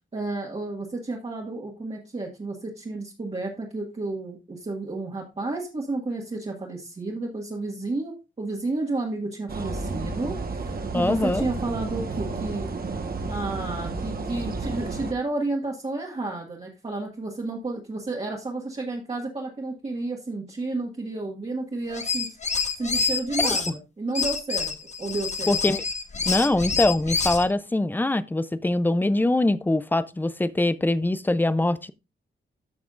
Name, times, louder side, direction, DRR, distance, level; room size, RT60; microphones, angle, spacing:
voice 1, 0.1-12.7 13.3-22.3 22.8-24.7 25.0-25.6, right 2 dB, 30° right, 1.7 m, -31 dB
sound 1, 9.5-15.1, right 3 dB, 50° right, 1.2 m, -31 dB
voice 2, 10.9-11.4 25.5-25.8 26.3-31.9, left 2 dB, 10° left, 0.5 m, -23 dB
sound 2, 21.9-23.7 24.1-27.5, left 4 dB, 35° left, 1.1 m, -27 dB
13.5 x 5.8 x 2.5 m
wide cardioid pair, 125°, 20 cm